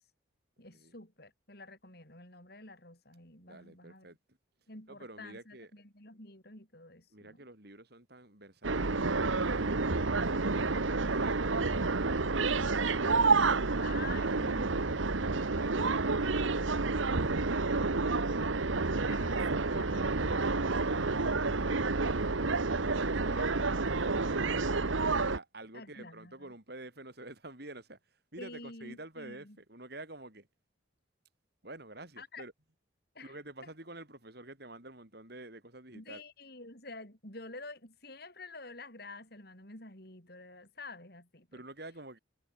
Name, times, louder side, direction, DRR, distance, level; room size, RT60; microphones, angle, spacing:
voice 1, 0.6-4.1 4.7-7.4 13.8-15.3 19.1-21.5 23.0-23.7 25.7-26.5 28.4-29.6 32.2-32.4 33.1-33.4 35.9-41.5, left 3 dB, 50° left, 7.9 m, -49 dB
voice 2, 3.5-4.4 4.9-5.7 7.1-9.0 9.4-13.4 14.9-18.2 19.9-22.3 22.9-24.8 25.2-30.5 31.6-32.5 33.2-36.2 41.5-42.2, right 2 dB, 55° right, 5.2 m, -49 dB
sound 1, 8.6-25.4, right 3 dB, 80° right, 1.3 m, -29 dB
head